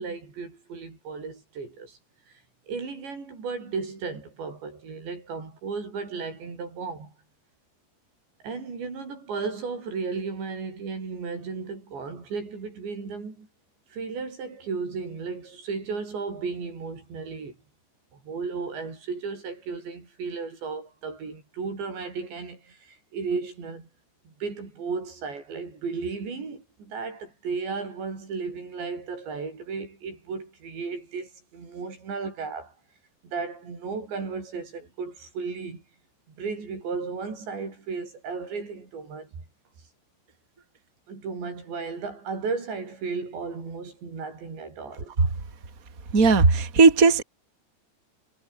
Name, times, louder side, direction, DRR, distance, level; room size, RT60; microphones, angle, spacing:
voice 1, 0.0-2.0 2.7-7.1 8.4-13.5 13.9-17.6 18.1-23.9 24.3-32.7 33.2-35.8 36.3-39.3 41.1-45.1, right 4 dB, 90° right, 9.9 m, -34 dB
voice 2, 46.1-47.2, right 4 dB, 20° right, 3.6 m, -17 dB
omnidirectional pair, 4.9 m